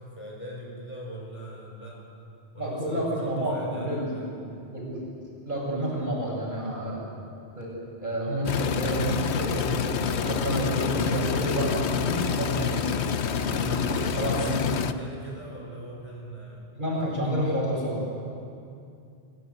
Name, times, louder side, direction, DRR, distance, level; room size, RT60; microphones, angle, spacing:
voice 1, 0.0-2.0 2.5-4.3 13.6-16.7 17.2-17.7, right 1 dB, 30° left, -3 dB, 5.6 m, -40 dB
voice 2, 2.6-4.3 4.7-5.0 5.4-7.0 7.6-13.0 13.5-14.7 16.7-18.0, right 1 dB, 45° right, -3 dB, 6.7 m, -29 dB
sound 1, 8.5-14.9, left 7 dB, 75° left, 1.1 m, -28 dB
28.5 x 17.0 x 8.2 m, 2.5 s
omnidirectional pair, 1.1 m